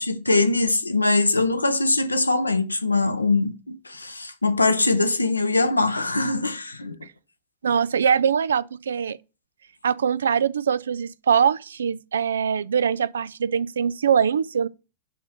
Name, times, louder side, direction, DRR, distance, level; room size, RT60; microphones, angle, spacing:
voice 1, 0.0-7.0, left 2 dB, 80° left, 0.9 m, -22 dB
voice 2, 7.6-9.2 9.8-14.7, right 7 dB, 70° right, 0.4 m, -22 dB
11.5 x 4.2 x 6.4 m
figure-of-eight pair, 90°, 0 cm